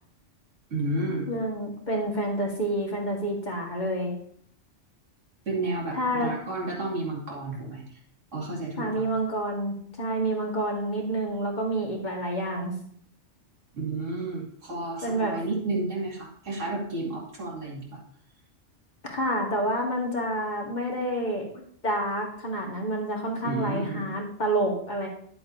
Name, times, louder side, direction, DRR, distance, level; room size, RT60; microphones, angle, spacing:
voice 1, 0.7-1.3 5.5-8.0 8.3-9.0 13.7-18.0 23.4-24.1, right 2 dB, 90° right, -3 dB, 2.6 m, -31 dB
voice 2, 1.3-4.1 5.9-6.3 8.8-12.7 15.0-15.4 19.0-25.1, right 1 dB, 40° left, 0 dB, 1.7 m, -28 dB
10.5 x 7.9 x 2.7 m, 0.63 s
omnidirectional pair, 1.2 m